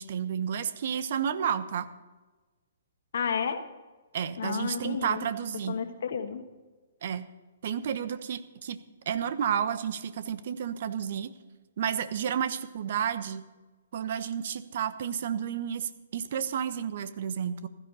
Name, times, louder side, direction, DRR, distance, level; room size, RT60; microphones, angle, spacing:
voice 1, 0.0-1.9 4.1-5.8 7.0-7.3 7.6-8.8 9.1-11.3 11.8-13.4 13.9-17.7, right 8 dB, 55° right, 12 dB, 1.0 m, -31 dB
voice 2, 3.1-3.6 4.4-5.3 5.7-6.4, left 6 dB, 65° left, 8 dB, 1.4 m, -31 dB
15.5 x 13.0 x 4.2 m, 1.2 s
hypercardioid pair, 130°, 0 cm